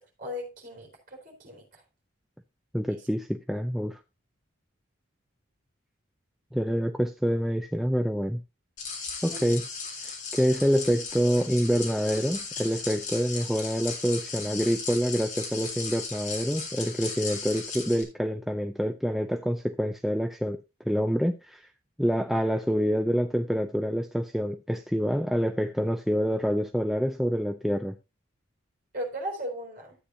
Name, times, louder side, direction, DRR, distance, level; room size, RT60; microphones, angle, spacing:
voice 1, 0.2-1.8 2.9-3.0 9.3-9.6 28.9-30.0, equal, 40° right, 4.2 m, -37 dB
voice 2, 2.7-4.0 6.5-8.4 9.2-9.6 10.0-20.6 20.9-21.7 22.0-27.9, equal, ahead, 0.4 m, -27 dB
sound 1, 8.8-18.0, left 4 dB, 40° left, 3.4 m, -36 dB
13.0 x 8.4 x 2.7 m
head